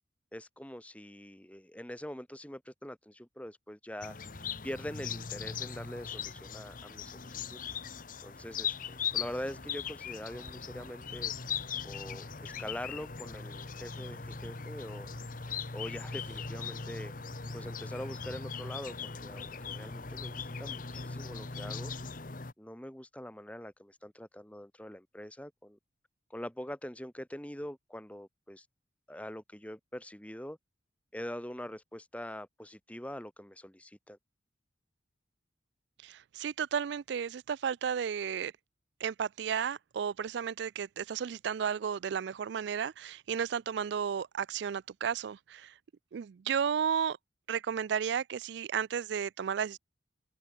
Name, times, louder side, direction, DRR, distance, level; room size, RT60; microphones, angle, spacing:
voice 1, 0.3-4.2 4.6-7.6 8.2-11.3 11.8-15.1 15.7-17.1 17.5-21.9 22.6-25.8 26.3-28.7 29.1-30.6 31.1-34.2, equal, 5° left, 1.9 m, -43 dB
sound 1, 4.0-22.5, left 6 dB, 45° left, 1.1 m, -39 dB
sound 2, 10.1-12.4 13.9-18.4, right 1 dB, 45° right, 7.9 m, -59 dB
voice 2, 36.0-38.5 39.0-45.7 46.1-47.2 47.5-49.8, right 7 dB, 65° right, 0.3 m, -33 dB
head